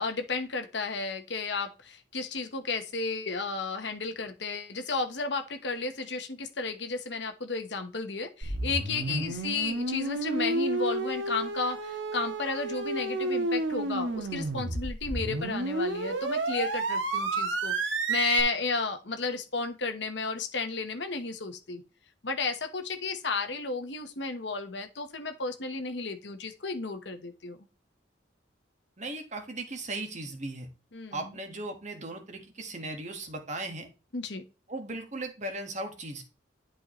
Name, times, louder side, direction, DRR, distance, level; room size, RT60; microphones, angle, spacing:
voice 1, 0.0-17.7 18.1-21.8 22.2-27.6 30.9-31.2 34.1-34.4, left 3 dB, 65° left, 7 dB, 1.2 m, -33 dB
sound 1, 8.4-18.4, right 2 dB, 90° right, 1.5 m, -31 dB
voice 2, 29.0-30.7 31.1-33.9 34.7-36.2, right 2 dB, 40° right, 5 dB, 1.6 m, -37 dB
11.0 x 4.7 x 3.1 m, 0.32 s
head